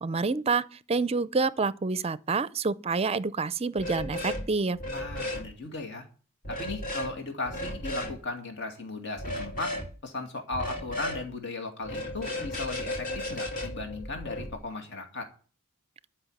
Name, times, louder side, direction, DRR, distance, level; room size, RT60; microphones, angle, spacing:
voice 1, 0.0-4.8, right 4 dB, 30° right, 0.5 m, -28 dB
sound 1, 3.8-4.5 4.7-5.5 6.5-7.1 7.5-8.1 9.2-9.9 10.5-11.2 11.8-14.5, left 1 dB, 40° left, 2.8 m, -34 dB
voice 2, 4.9-6.0 6.5-9.7 10.0-15.3, left 3 dB, 55° left, 2.5 m, -36 dB
12.0 x 5.8 x 9.3 m
head